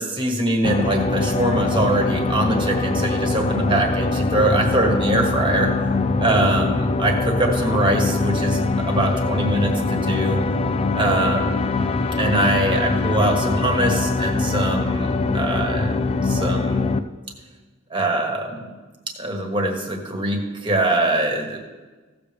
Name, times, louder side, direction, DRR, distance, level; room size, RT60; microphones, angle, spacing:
voice 1, 0.0-5.7 6.2-10.4 10.9-11.7 12.2-15.9 16.2-16.9 17.9-18.7 19.2-21.6, right 1 dB, 25° right, 2 dB, 1.4 m, -23 dB
sound 1, 0.6-17.0, left 3 dB, 30° left, 0.3 m, -22 dB
15.5 x 6.9 x 3.4 m, 1.3 s
head